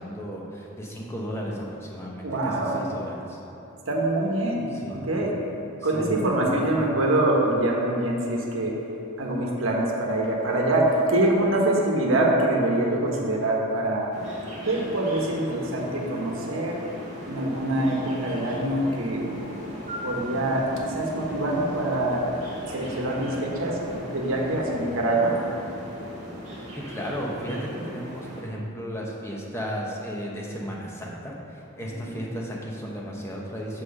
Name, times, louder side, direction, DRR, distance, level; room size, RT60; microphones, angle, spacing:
voice 1, 0.0-3.4 4.7-5.2 5.8-6.9 26.9-33.8, equal, 10° left, -3 dB, 0.9 m, -34 dB
voice 2, 2.2-2.8 3.9-5.3 5.8-8.7 9.2-14.1 14.6-16.8 17.3-19.3 20.0-22.3 22.7-23.8 24.1-25.3 32.0-32.1, right 1 dB, 65° right, -1 dB, 1.2 m, -24 dB
sound 1, 14.1-28.4, equal, 35° right, 1.6 m, -38 dB
6.0 x 4.8 x 6.4 m, 2.8 s
head